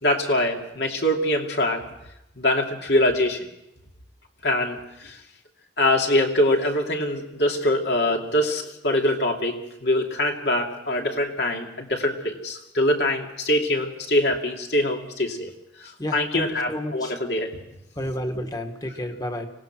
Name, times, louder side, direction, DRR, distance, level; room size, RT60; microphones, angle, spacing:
voice 1, 0.0-1.8 2.4-3.4 4.4-5.2 5.8-15.5 15.8-17.6, left 1 dB, 65° left, 1 dB, 2.8 m, -23 dB
voice 2, 16.0-17.2 18.0-19.5, left 1 dB, 20° left, 6 dB, 1.8 m, -31 dB
25.5 x 18.0 x 6.1 m, 0.86 s
head